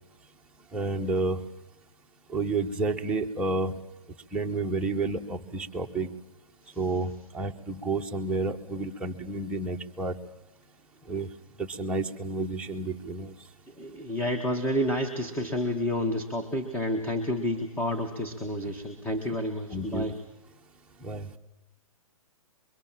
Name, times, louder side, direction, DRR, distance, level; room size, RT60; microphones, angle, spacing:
voice 1, 0.7-1.4 2.3-3.8 4.3-6.1 6.8-10.1 11.1-11.3 11.6-13.3 19.7-20.1 21.0-21.3, right 3 dB, 5° right, -1 dB, 1.3 m, -30 dB
voice 2, 13.8-20.1, left 1 dB, 10° left, 4 dB, 1.8 m, -29 dB
25.0 x 23.0 x 7.6 m, 1.0 s
hypercardioid pair, 135°, 18 cm